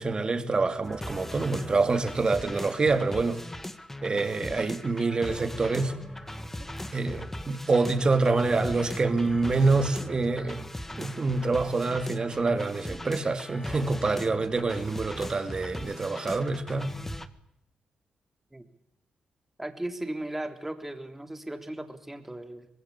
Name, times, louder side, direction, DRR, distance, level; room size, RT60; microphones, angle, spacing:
voice 1, 0.0-3.4 4.0-5.9 6.9-10.6 11.0-16.9, right 3 dB, 35° right, 2.8 m, -26 dB
sound 1, 0.8-17.3, left 1 dB, 10° left, 1.8 m, -39 dB
voice 2, 19.6-22.7, right 1 dB, 10° right, 3.6 m, -36 dB
25.0 x 20.5 x 8.6 m
cardioid pair, 85°, 2 cm